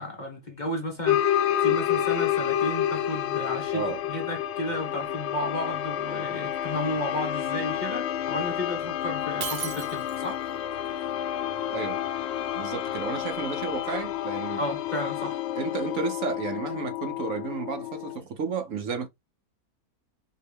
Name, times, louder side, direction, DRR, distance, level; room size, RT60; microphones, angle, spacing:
voice 1, 0.0-10.4 14.6-15.4, left 1 dB, 35° left, 1.0 m, -33 dB
sound 1, 1.1-18.2, left 11 dB, 70° left, 0.6 m, -29 dB
Shatter, 9.4-10.4, right 8 dB, 85° right, 1.3 m, -35 dB
voice 2, 12.5-14.6 15.6-19.1, right 5 dB, 60° right, 1.1 m, -32 dB
4.4 x 3.0 x 3.4 m
omnidirectional pair, 1.6 m